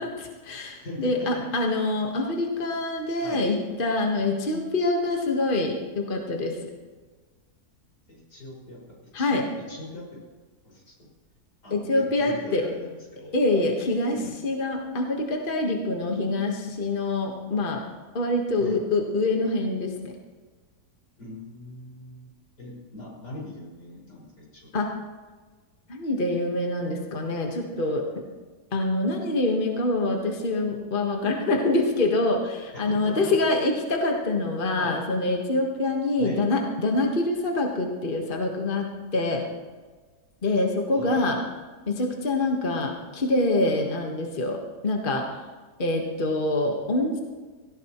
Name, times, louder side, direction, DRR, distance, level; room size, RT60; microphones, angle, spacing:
voice 1, 0.0-6.6 9.1-9.4 11.7-12.6 13.3-17.8 18.1-20.1 24.7-25.0 25.9-28.2 28.7-39.5 40.4-41.4 41.9-45.3 45.8-47.2, left 2 dB, 35° left, 1 dB, 1.6 m, -25 dB
voice 2, 0.8-1.6 3.2-3.4 8.1-8.8 9.2-10.2 10.6-11.0 11.6-13.3 14.1-14.4 18.6-18.8 21.2-22.3 22.6-24.9 32.7-33.6 34.8-35.0 36.2-36.4 40.9-41.2, left 1 dB, 75° left, -5 dB, 6.3 m, -41 dB
17.5 x 17.0 x 3.1 m, 1.4 s
omnidirectional pair, 1.7 m